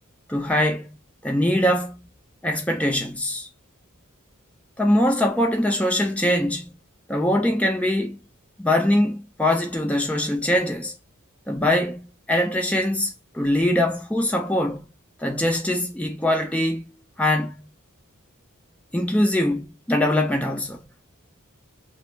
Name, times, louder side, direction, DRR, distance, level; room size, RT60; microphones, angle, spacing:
voice 1, 0.3-0.9 1.2-2.0 2.4-3.5 4.8-6.7 7.1-8.2 8.6-10.9 11.5-14.9 15.2-17.5 18.9-20.8, left 1 dB, 5° left, 0.5 m, -22 dB
2.1 x 2.0 x 3.1 m
head